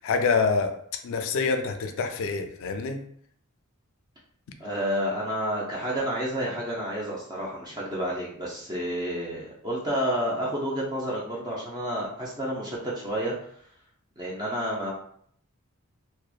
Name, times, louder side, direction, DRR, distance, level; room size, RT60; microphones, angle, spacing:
voice 1, 0.0-0.7 1.0-3.0, left 4 dB, 65° left, 6 dB, 0.3 m, -26 dB
voice 2, 4.6-13.3 14.2-14.9, equal, 20° right, -5 dB, 0.5 m, -30 dB
2.8 x 2.1 x 2.3 m, 0.64 s
head